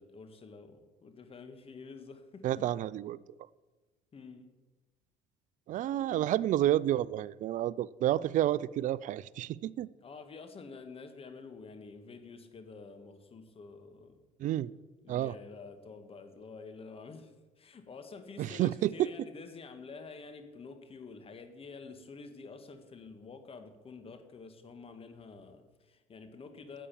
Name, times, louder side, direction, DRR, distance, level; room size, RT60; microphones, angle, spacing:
voice 1, 0.0-2.7 4.1-4.5 5.9-6.3 10.0-14.2 15.0-26.9, left 4 dB, 40° left, 1.7 m, -49 dB
voice 2, 2.4-3.2 5.7-9.9 14.4-14.7 15.1-15.3 18.4-19.1, right 13 dB, 55° right, 0.4 m, -30 dB
10.0 x 8.4 x 7.1 m
supercardioid pair, 75°, 15 cm